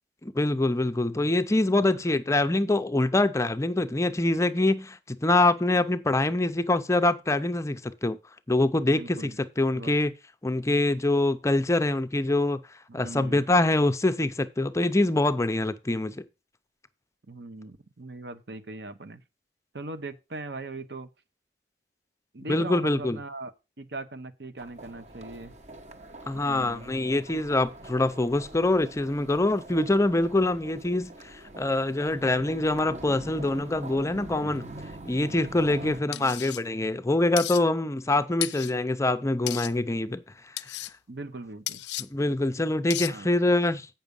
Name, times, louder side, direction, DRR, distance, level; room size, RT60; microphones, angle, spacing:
voice 1, 0.2-8.2 8.5-10.1 10.4-12.6 12.9-16.2 22.5-23.2 26.3-34.7 35.0-40.2 40.7-40.8 42.0-43.9, left 2 dB, 15° left, 0.5 m, -25 dB
voice 2, 8.9-9.4 9.7-10.0 12.9-13.5 17.3-19.2 19.7-21.1 22.3-23.5 23.8-25.5 26.3-26.9 35.7-36.3 41.1-41.8 43.1-43.4, right 2 dB, 70° right, 1.0 m, -40 dB
sound 1, 24.6-36.0, right 2 dB, 40° right, 1.1 m, -44 dB
sound 2, 36.1-36.6 37.4-37.6 38.4-38.7 39.5-39.7 40.6-40.9 41.7-42.1 42.9-43.1, left 16 dB, 70° left, 0.4 m, -33 dB
8.3 x 5.9 x 5.3 m
head